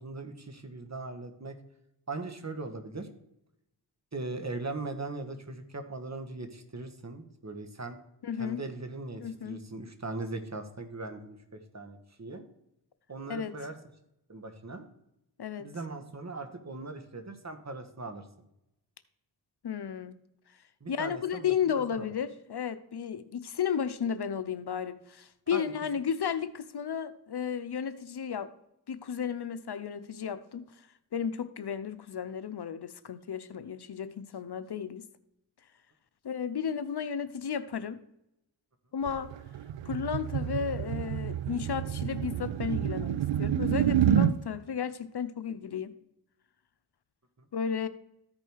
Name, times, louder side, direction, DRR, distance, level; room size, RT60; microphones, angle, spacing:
voice 1, 0.0-1.6 2.1-3.1 4.1-8.0 8.4-12.4 13.1-13.8 14.3-14.9 15.6-18.3 20.8-21.5 21.9-22.1 25.5-25.7, right 3 dB, 40° right, 7 dB, 1.6 m, -39 dB
voice 2, 8.2-8.6 9.2-9.6 13.3-13.6 15.4-15.7 19.6-20.1 20.9-28.5 28.9-30.6 31.1-35.0 36.2-38.0 38.9-39.3 39.9-45.9 47.5-47.9, left 7 dB, 60° left, 12 dB, 0.8 m, -33 dB
sound 1, 39.1-44.3, right 10 dB, 80° right, 0.5 m, -28 dB
14.0 x 5.2 x 4.7 m, 0.83 s
cardioid pair, 55°, 43 cm